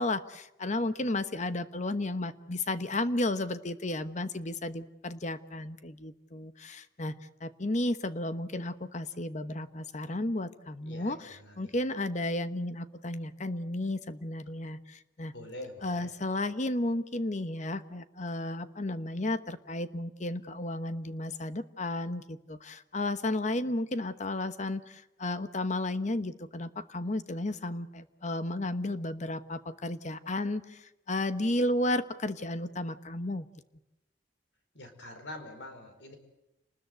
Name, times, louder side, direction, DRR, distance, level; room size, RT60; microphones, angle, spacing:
voice 1, 0.0-7.1 7.4-15.3 15.8-33.5, left 1 dB, 40° left, 12 dB, 1.1 m, -33 dB
voice 2, 10.8-11.8 15.3-16.1 34.7-36.2, left 1 dB, 90° left, 7 dB, 4.8 m, -45 dB
29.5 x 20.5 x 7.9 m, 0.94 s
head